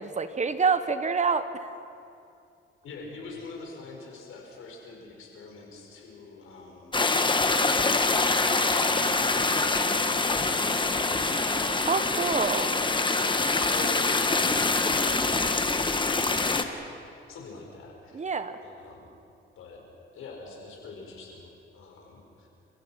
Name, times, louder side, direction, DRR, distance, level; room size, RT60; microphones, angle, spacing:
voice 1, 0.0-1.5 11.9-12.7 18.1-18.6, right 5 dB, 35° right, 11 dB, 1.3 m, -26 dB
voice 2, 2.8-11.8 13.1-15.6 16.0-18.2 18.6-19.1 19.6-19.8 20.1-22.5, left 3 dB, 75° left, 0 dB, 5.5 m, -46 dB
sound 1, 6.9-16.6, left 3 dB, 20° left, 1.4 m, -25 dB
29.0 x 16.0 x 5.9 m, 2.6 s
cardioid pair, 85°, 21 cm